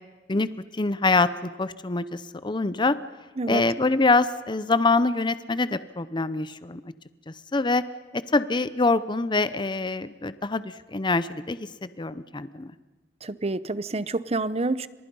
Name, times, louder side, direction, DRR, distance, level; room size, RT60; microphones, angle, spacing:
voice 1, 0.3-3.0 3.5-6.8 7.3-7.8 8.1-12.7, left 3 dB, 25° left, 14 dB, 0.7 m, -25 dB
voice 2, 13.2-14.9, right 2 dB, 35° right, 16 dB, 0.7 m, -28 dB
30.0 x 26.5 x 5.5 m, 1.3 s
head